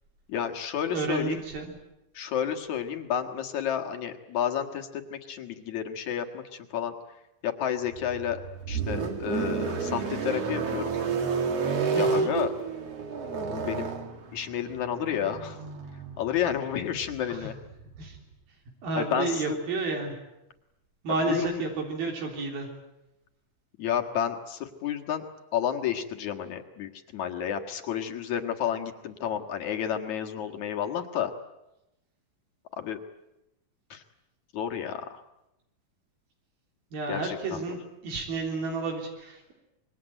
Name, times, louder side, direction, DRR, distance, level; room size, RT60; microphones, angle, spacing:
voice 1, 0.3-1.4 2.1-6.9 7.4-8.4 8.7-11.0 11.9-12.5 13.4-13.9 14.3-15.6 16.2-17.5 19.0-19.6 21.3-21.6 23.8-25.2 25.5-31.3 32.7-33.0 33.9-34.0 34.5-35.2 37.1-37.6, left 9 dB, 60° left, 5 dB, 2.8 m, -31 dB
voice 2, 0.9-1.7 11.9-12.3 17.3-17.4 18.0-18.2 18.8-20.2 21.0-22.7 36.9-39.5, right 3 dB, 80° right, 2 dB, 5.4 m, -31 dB
sound 1, 7.9-18.2, right 5 dB, 45° right, 2.9 m, -31 dB
26.0 x 22.5 x 9.0 m, 0.89 s
omnidirectional pair, 4.1 m